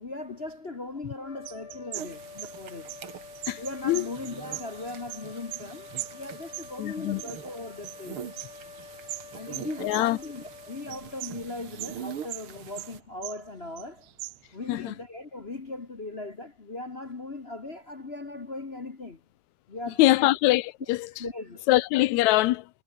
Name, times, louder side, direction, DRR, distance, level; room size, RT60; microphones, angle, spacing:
voice 1, 0.0-2.9 3.6-8.3 9.3-14.1 14.5-19.2 19.7-20.3 21.2-21.7, left 2 dB, 35° left, 1.0 m, -39 dB
sound 1, 1.2-11.8, left 6 dB, 60° left, 4.5 m, -48 dB
sound 2, 1.5-5.7 6.0-8.0 8.3-10.6 10.9-12.0 12.3-13.5 13.8-14.6, right 20 dB, 80° right, 1.7 m, -40 dB
sound 3, 1.9-13.0, right 8 dB, 50° right, 2.3 m, -44 dB
voice 2, 3.5-4.1 6.8-7.2 9.8-10.2 14.7-14.9 20.0-21.1 21.7-22.7, left 17 dB, 75° left, 2.0 m, -23 dB
omnidirectional pair, 3.4 m